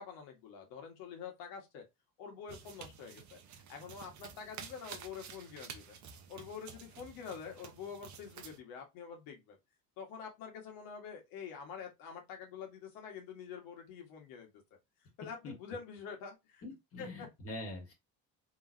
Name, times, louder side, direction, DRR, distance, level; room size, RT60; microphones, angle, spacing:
voice 1, 0.0-1.8 2.2-5.9 6.3-9.6 10.0-14.5 15.2-16.6 17.0-17.3, left 6 dB, 85° left, 1.6 m, -46 dB
sound 1, 2.5-8.6, right 7 dB, 55° right, 0.9 m, -51 dB
voice 2, 16.6-17.9, left 2 dB, 40° left, 1.7 m, -44 dB
3.7 x 3.1 x 2.6 m
cardioid pair, 105°, 34 cm